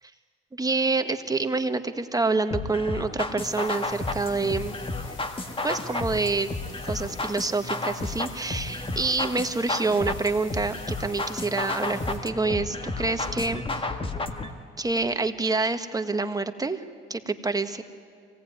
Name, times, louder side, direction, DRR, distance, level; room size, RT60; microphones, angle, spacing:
voice 1, 0.5-4.8 5.6-6.5 6.8-13.8 14.8-16.8 17.1-17.8, right 3 dB, 20° right, 8 dB, 1.4 m, -27 dB
sound 1, 2.5-14.5, left 2 dB, 25° left, 1.8 m, -32 dB
sound 2, 3.4-12.2, left 3 dB, 75° left, 5.4 m, -48 dB
25.5 x 17.5 x 9.4 m, 2.4 s
cardioid pair, 90°, 20 cm